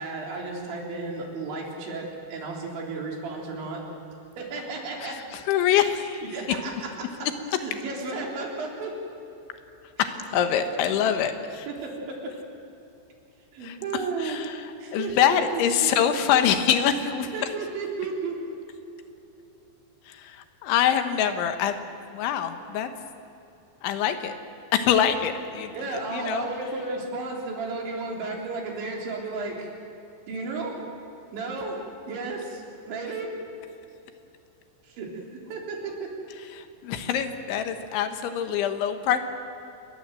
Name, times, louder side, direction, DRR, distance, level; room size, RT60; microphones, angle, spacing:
voice 1, 0.0-3.8 4.4-5.2 6.3-6.7 7.6-8.9 10.1-10.2 11.0-11.1 11.7-12.3 13.5-14.4 14.8-15.1 15.5-15.6 17.0-18.4 25.7-29.7 30.3-30.9 31.3-31.8 32.1-33.3 34.9-36.1, right 3 dB, 80° right, -1 dB, 6.1 m, -33 dB
voice 2, 5.0-6.2 10.0-11.7 13.6-17.3 20.1-21.8 22.1-22.9 23.8-24.3 24.7-26.5 36.5-39.2, left 9 dB, 90° left, 8 dB, 3.8 m, -25 dB
28.5 x 20.5 x 7.7 m, 2.9 s
omnidirectional pair, 5.2 m